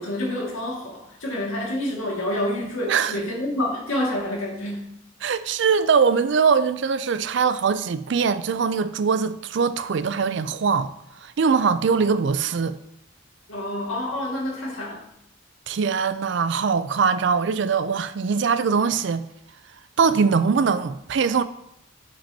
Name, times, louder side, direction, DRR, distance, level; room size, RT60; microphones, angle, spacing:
voice 1, 0.0-4.9 13.5-15.1, left 1 dB, 90° left, 2.0 m, -28 dB
voice 2, 2.9-3.2 5.2-10.9 11.2-12.8 15.7-19.2 20.0-21.4, right 5 dB, 60° right, 0.4 m, -22 dB
8.4 x 5.9 x 2.8 m
head